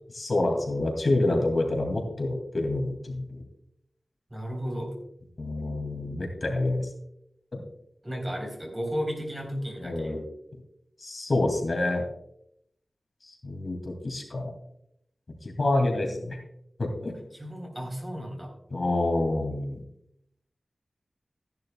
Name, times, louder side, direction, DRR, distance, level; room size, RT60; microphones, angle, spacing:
voice 1, 0.1-3.4 5.4-6.9 7.5-7.6 9.8-10.2 11.0-12.0 13.2-14.5 15.4-16.4 16.8-17.2 18.7-19.8, left 2 dB, 55° left, 2 dB, 2.3 m, -27 dB
voice 2, 4.3-4.9 8.0-10.2 17.3-18.5, equal, 20° right, 2 dB, 3.7 m, -34 dB
15.0 x 10.5 x 2.3 m, 0.75 s
wide cardioid pair, 75°, 0 cm